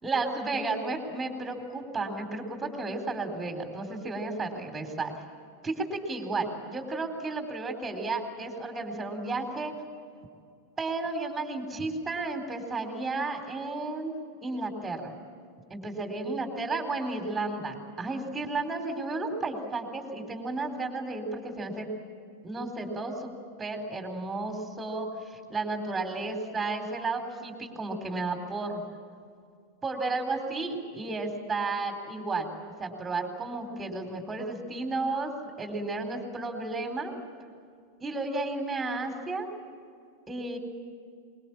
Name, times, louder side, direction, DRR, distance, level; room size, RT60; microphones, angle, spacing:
voice 1, 0.0-5.1 5.6-9.7 10.8-14.2 14.4-15.1 15.7-21.9 22.4-23.3 23.6-28.8 29.8-32.5 32.8-35.3 35.6-37.1 38.0-39.5 40.3-40.6, right 3 dB, 15° right, 5 dB, 3.9 m, -33 dB
25.0 x 22.5 x 7.3 m, 2.3 s
figure-of-eight pair, 90°, 0 cm